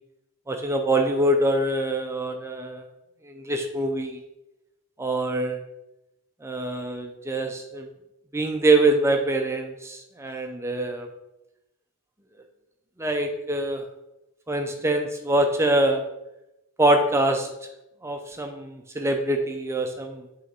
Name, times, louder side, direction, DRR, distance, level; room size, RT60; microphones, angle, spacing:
voice 1, 0.5-2.9 3.2-4.2 5.0-5.6 6.4-7.9 8.3-11.1 13.0-13.8 14.5-16.0 16.8-17.5 18.0-20.3, right 1 dB, 10° right, 5 dB, 0.4 m, -24 dB
7.6 x 3.4 x 4.1 m, 0.91 s
head